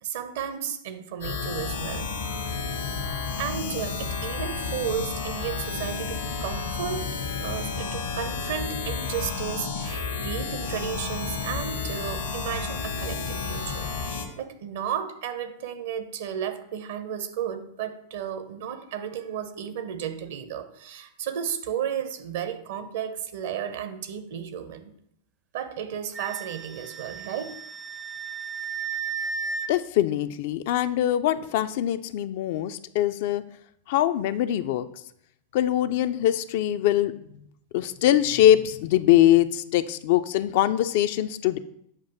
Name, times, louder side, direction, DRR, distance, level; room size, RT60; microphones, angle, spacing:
voice 1, 0.0-2.4 3.4-24.9 25.5-27.6, right 8 dB, 55° right, 9 dB, 0.7 m, -33 dB
sound 1, 1.2-14.3, left 4 dB, 70° left, 1.0 m, -31 dB
Wind instrument woodwind instrument, 26.1-29.7, right 5 dB, 20° right, 0.4 m, -34 dB
voice 2, 29.7-33.4 33.9-34.9 35.5-37.1 37.7-41.6, left 12 dB, 50° left, 12 dB, 0.3 m, -22 dB
7.3 x 2.6 x 5.6 m, 0.73 s
figure-of-eight pair, 90°, 0 cm